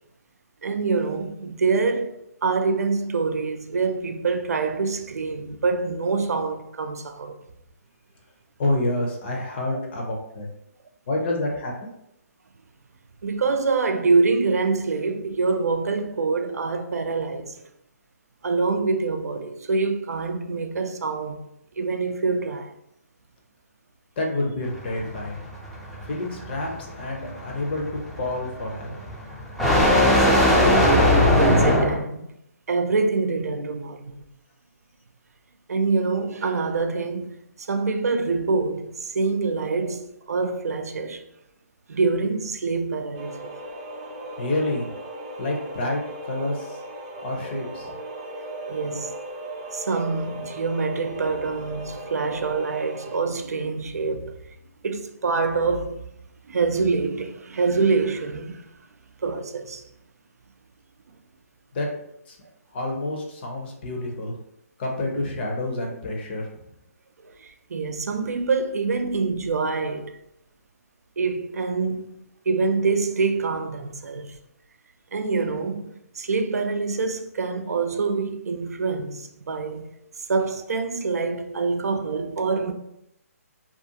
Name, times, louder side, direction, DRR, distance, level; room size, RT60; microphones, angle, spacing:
voice 1, 0.6-7.4 9.7-9.8 13.2-17.6 18.4-21.4 21.8-22.7 30.0-32.3 32.7-34.1 35.7-41.2 41.9-43.5 48.7-49.1 49.7-54.4 54.8-56.0 56.5-58.6 59.2-59.8 67.4-70.1 71.2-72.2 72.5-74.3 75.1-79.9 80.3-82.7, right 4 dB, 80° right, 0.4 m, -25 dB
voice 2, 8.6-10.5 11.1-11.9 24.2-25.4 26.1-26.7 27.0-29.1 44.4-44.9 45.4-46.8 47.2-47.9 61.7-61.9 62.3-62.4 62.7-64.4 64.8-66.5, left 2 dB, 40° left, 0.6 m, -28 dB
sound 1, 24.6-32.0, left 1 dB, ahead, 0.4 m, -20 dB
sound 2, 43.1-53.2, right 1 dB, 35° right, 0.6 m, -37 dB
2.4 x 2.3 x 2.7 m
hypercardioid pair, 150°, 8 cm